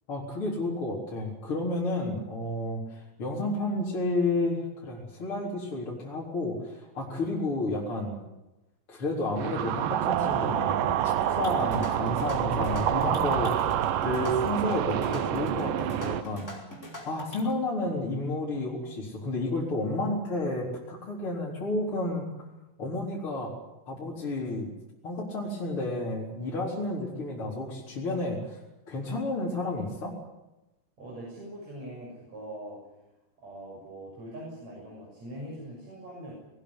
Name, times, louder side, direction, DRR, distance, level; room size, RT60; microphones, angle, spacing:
voice 1, 0.1-8.2 8.9-13.7 14.0-16.5 17.0-22.2 22.8-23.5 23.8-24.7 25.0-28.6 28.9-30.2, left 2 dB, 40° left, -4 dB, 4.8 m, -31 dB
sound 1, 9.4-16.2, right 10 dB, 75° right, 2.6 m, -27 dB
sound 2, 11.3-17.5, left 1 dB, 20° left, 5.4 m, -43 dB
voice 2, 31.0-32.8 33.4-36.3, right 1 dB, 50° right, -3 dB, 8.0 m, -42 dB
21.0 x 20.0 x 9.8 m, 1.0 s
omnidirectional pair, 3.9 m